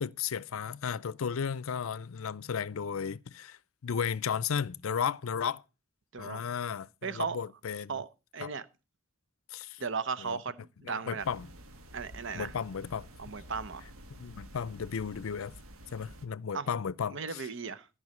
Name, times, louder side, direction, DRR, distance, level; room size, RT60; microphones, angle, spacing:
voice 1, 0.0-5.6 6.2-8.0 8.4-8.5 9.5-9.8 10.2-10.4 10.9-11.5 12.3-13.1 14.2-15.5 15.9-17.4, left 7 dB, 75° left, 0.5 m, -34 dB
voice 2, 7.0-7.4 7.9-8.7 9.8-11.3 11.9-12.5 13.2-13.9 16.5-16.7 17.1-17.9, right 5 dB, 60° right, 0.8 m, -36 dB
sound 1, 11.2-16.3, equal, 85° right, 1.4 m, -50 dB
14.0 x 5.5 x 6.4 m
head